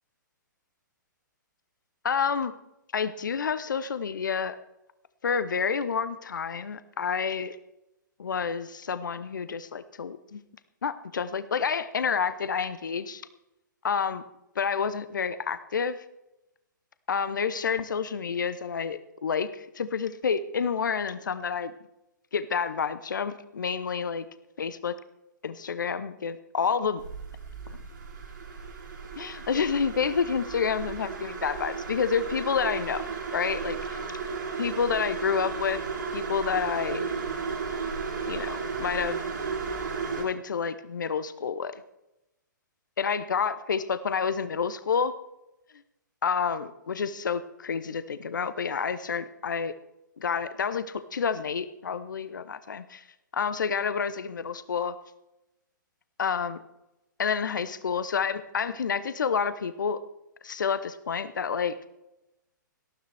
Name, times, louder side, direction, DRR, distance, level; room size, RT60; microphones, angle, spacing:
voice 1, 2.0-2.5 2.9-4.6 5.2-7.6 8.2-10.4 10.8-13.2 13.8-14.2 14.6-16.0 17.1-21.7 22.3-24.2 24.6-25.0 25.4-27.0 29.2-33.0 33.3-34.2 34.6-35.8 36.1-37.0 38.3-39.2 40.2-41.7 43.0-45.1 46.2-49.7 50.2-53.0 53.3-54.9 56.2-56.6 57.2-60.0 60.4-61.8, left 6 dB, 70° left, 13 dB, 0.8 m, -29 dB
sound 1, 27.0-40.2, right 5 dB, 75° right, 5.0 m, -34 dB
18.5 x 13.0 x 3.4 m, 0.89 s
figure-of-eight pair, 120°, 11 cm